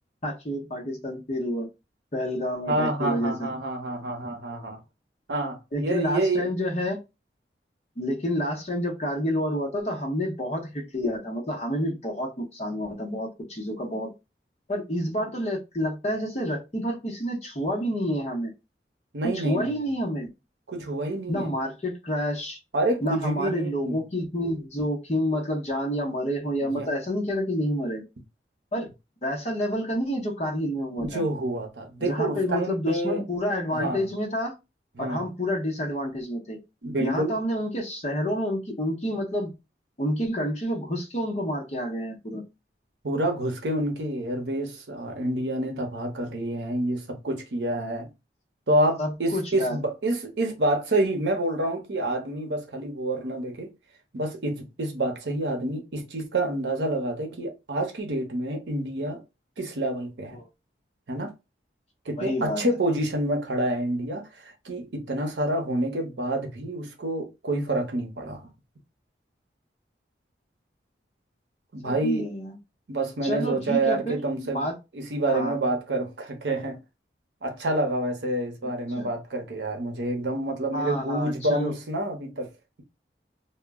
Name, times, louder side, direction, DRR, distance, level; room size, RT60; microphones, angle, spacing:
voice 1, 0.2-1.7 2.1-3.3 5.7-7.0 8.0-14.1 14.7-18.5 19.3-20.3 21.3-22.6 23.0-28.0 28.7-28.9 29.2-31.2 32.0-34.5 35.0-36.6 37.0-39.5 40.0-42.4 49.0-49.8 60.3-60.5 62.1-62.6 71.8-72.5 73.2-74.2 74.5-74.7 75.2-75.5 79.0-79.1 80.7-81.7, equal, 40° left, 0.7 m, -29 dB
voice 2, 2.7-4.8 5.3-6.5 19.1-19.9 20.7-21.5 22.7-24.0 26.6-26.9 31.0-33.2 33.7-34.1 35.0-35.2 36.8-37.4 43.0-48.1 48.7-53.7 54.1-59.2 59.6-60.4 61.1-61.3 62.1-68.5 71.7-72.3 72.9-74.7 74.9-76.8 77.4-82.5, right 1 dB, 80° right, 0.7 m, -28 dB
2.2 x 2.0 x 3.4 m
head